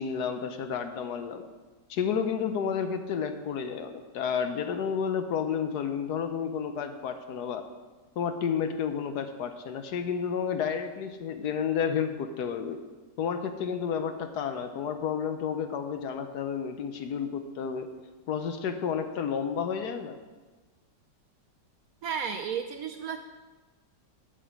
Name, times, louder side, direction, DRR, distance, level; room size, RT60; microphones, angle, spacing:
voice 1, 0.0-1.4 1.9-7.7 8.2-12.8 13.2-17.9 18.3-20.2, left 7 dB, 70° left, 8 dB, 1.2 m, -31 dB
voice 2, 22.0-23.2, right 7 dB, 70° right, 7 dB, 0.9 m, -33 dB
8.2 x 6.0 x 7.2 m, 1.3 s
omnidirectional pair, 1.9 m